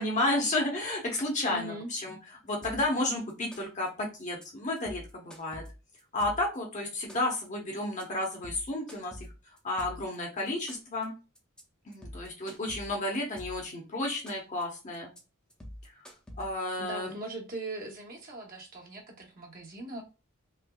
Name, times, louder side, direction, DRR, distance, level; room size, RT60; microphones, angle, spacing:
voice 1, 0.0-2.2 2.4-5.6 6.1-9.2 9.6-11.1 11.9-15.1 16.4-17.2, left 1 dB, 35° left, 0.8 m, -32 dB
voice 2, 1.5-1.9 16.8-20.0, right 2 dB, 45° right, 0.8 m, -40 dB
sound 1, 2.6-3.0 3.3-3.9 4.2-4.4 4.8-6.6 6.9-7.5 7.8-8.0 8.3-10.1 10.5-11.0 11.3-11.6 11.9-13.7 14.0-14.6 14.9-15.2 15.5-16.7, equal, 5° left, 0.6 m, -46 dB
3.3 x 2.9 x 2.2 m
head